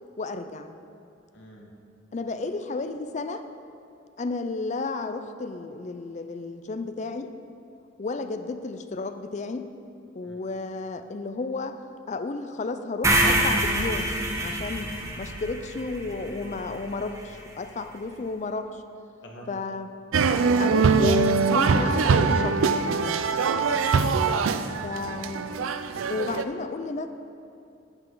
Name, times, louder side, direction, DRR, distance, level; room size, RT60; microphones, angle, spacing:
voice 1, 0.2-0.8 2.1-3.4 4.2-7.3 8.0-9.7 10.1-11.8 12.1-14.1 14.4-18.8 19.5-19.9 20.6-22.7 22.9-23.4 24.8-25.5 26.1-27.1, left 3 dB, 35° left, 9 dB, 0.4 m, -32 dB
voice 2, 1.3-1.7 10.2-10.3 19.2-19.5 24.0-25.3, equal, 65° left, -1 dB, 1.4 m, -46 dB
sound 1, 13.0-17.2, right 1 dB, 15° right, 0.8 m, -26 dB
sound 2, 20.1-26.4, right 4 dB, 90° right, 0.4 m, -22 dB
8.8 x 7.7 x 3.8 m, 2.6 s
head